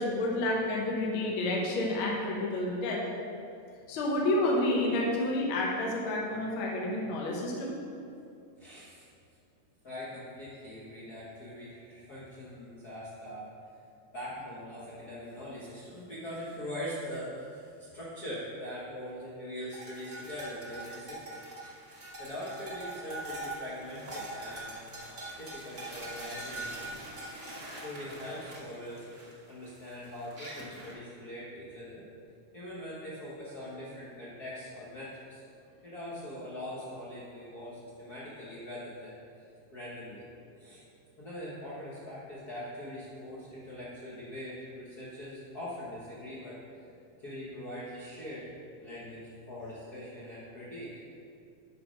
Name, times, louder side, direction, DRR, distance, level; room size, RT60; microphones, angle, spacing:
voice 1, 0.0-3.0 3.9-7.8, left 1 dB, 60° left, -2 dB, 1.4 m, -29 dB
voice 2, 8.6-9.1 9.8-13.5 14.1-21.7 22.2-24.8 25.4-27.0 27.8-32.1 32.5-35.4 35.8-39.4 39.7-40.3 40.6-40.8 41.2-46.6 47.2-48.5 48.8-51.0, left 1 dB, 80° left, -9 dB, 0.8 m, -42 dB
sound 1, 19.7-30.9, right 1 dB, 80° right, 0.6 m, -43 dB
10.5 x 4.2 x 5.2 m, 2.5 s
omnidirectional pair, 3.8 m